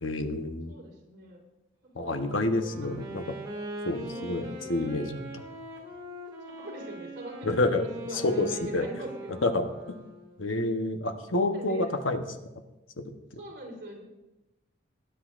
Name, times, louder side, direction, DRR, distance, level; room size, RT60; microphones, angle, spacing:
voice 1, 0.0-0.7 1.9-3.4 3.8-5.5 7.4-7.9 8.1-8.9 9.4-9.7 10.4-12.2 13.0-13.1, left 2 dB, 85° left, 6 dB, 1.0 m, -28 dB
voice 2, 0.7-1.4 2.0-2.9 4.1-4.8 6.5-7.8 8.1-9.5 11.5-11.9 13.4-14.0, right 1 dB, 60° right, -2 dB, 3.5 m, -43 dB
Wind instrument woodwind instrument, 2.4-10.5, right 1 dB, 25° right, 2.4 m, -41 dB
19.0 x 10.5 x 2.5 m, 0.97 s
head